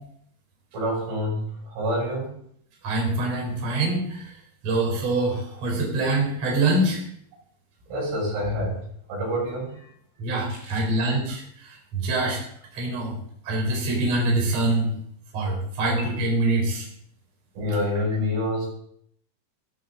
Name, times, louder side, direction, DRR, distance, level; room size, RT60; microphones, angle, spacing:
voice 1, 0.7-2.4 7.9-9.9 10.5-10.8 17.6-18.7, left 1 dB, 85° right, -3 dB, 9.4 m, -27 dB
voice 2, 2.8-4.2 4.6-7.0 10.2-11.4 11.9-12.4 12.7-13.1 13.4-14.9 15.3-16.8, right 2 dB, 35° right, -1 dB, 5.0 m, -24 dB
16.0 x 15.0 x 3.9 m, 0.66 s
omnidirectional pair, 5.5 m